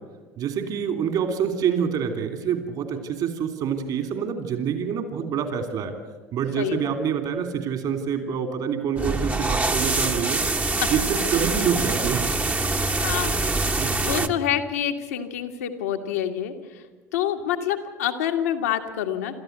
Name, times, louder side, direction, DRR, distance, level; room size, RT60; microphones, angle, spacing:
voice 1, 0.4-5.9 6.3-10.4 10.9-12.2 13.8-13.9 14.2-14.3, right 7 dB, 50° right, 7 dB, 3.2 m, -26 dB
voice 2, 6.6-6.9 13.0-13.4 14.0-16.8 17.1-19.4, left 10 dB, 75° left, 5 dB, 1.8 m, -27 dB
sound 1, 9.0-14.3, right 3 dB, 20° right, 1.3 m, -24 dB
27.5 x 13.5 x 8.2 m, 1.3 s
hypercardioid pair, 70°, 8 cm